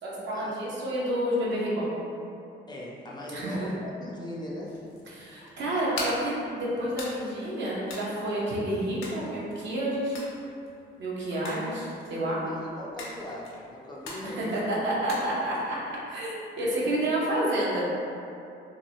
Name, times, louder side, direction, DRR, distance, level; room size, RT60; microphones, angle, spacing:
voice 1, 0.0-1.9 3.3-3.7 5.1-10.2 11.0-12.4 14.2-15.8 16.1-17.8, right 1 dB, 65° right, -6 dB, 0.8 m, -29 dB
voice 2, 2.7-4.7 12.2-15.3 16.8-17.1, left 1 dB, 20° left, -4 dB, 0.4 m, -40 dB
sound 1, 4.5-16.0, left 2 dB, 85° left, 0.6 m, -43 dB
2.8 x 2.0 x 2.7 m, 2.6 s
cardioid pair, 90°, 20 cm